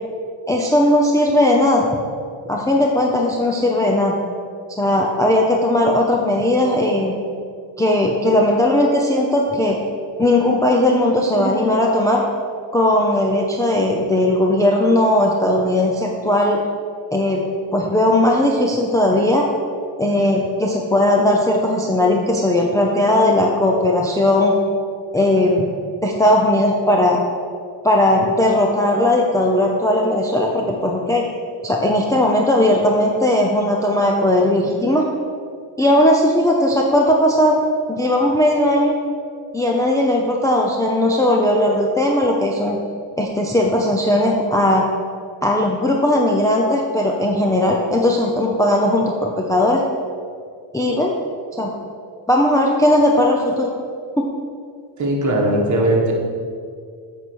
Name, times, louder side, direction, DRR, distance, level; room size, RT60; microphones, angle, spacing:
voice 1, 0.5-1.8 2.5-4.2 4.7-7.1 7.8-9.8 10.2-12.2 12.7-16.6 17.1-17.4 17.7-19.5 20.0-24.5 25.1-25.7 26.0-27.2 27.8-31.2 31.6-35.1 35.8-37.6 37.9-38.9 39.5-42.8 43.2-44.9 45.4-49.8 50.7-51.1 51.5-51.7 52.3-53.7 54.2-54.3, left 1 dB, 5° left, -1 dB, 0.6 m, -17 dB
voice 2, 55.0-56.1, right 1 dB, 35° right, 0 dB, 1.6 m, -19 dB
8.3 x 4.6 x 6.3 m, 2.2 s
cardioid pair, 125°, 49 cm